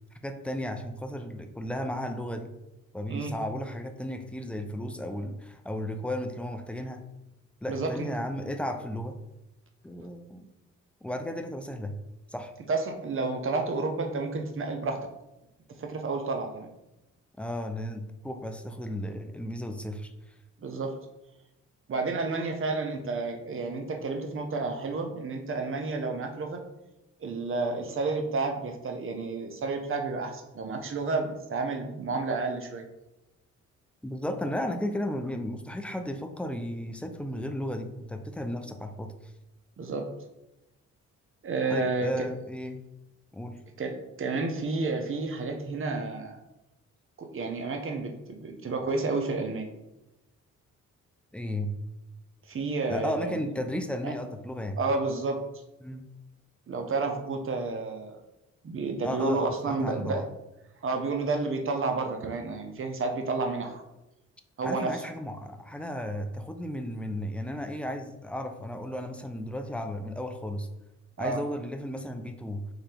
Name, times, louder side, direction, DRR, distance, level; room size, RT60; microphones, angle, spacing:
voice 1, 0.2-2.5 2.9-7.0 7.6-9.2 9.8-10.5 11.0-11.9 12.3-12.5 17.4-20.1 34.0-39.1 41.7-42.8 43.3-43.6 51.3-51.7 52.9-54.8 55.8-56.1 59.0-60.3 64.6-70.7 71.2-72.6, left 1 dB, 5° left, 6 dB, 0.4 m, -34 dB
voice 2, 7.7-8.1 12.7-15.1 15.8-16.7 20.6-20.9 21.9-26.6 27.2-32.8 39.8-40.1 41.4-42.3 43.8-46.4 47.2-49.7 52.5-53.5 54.0-54.1 54.8-55.4 56.7-58.2 58.6-60.2 60.8-63.8 64.6-65.0 71.2-71.4, right 3 dB, 40° right, 4 dB, 0.7 m, -30 dB
3.8 x 2.7 x 3.3 m, 0.95 s
cardioid pair, 70°, 32 cm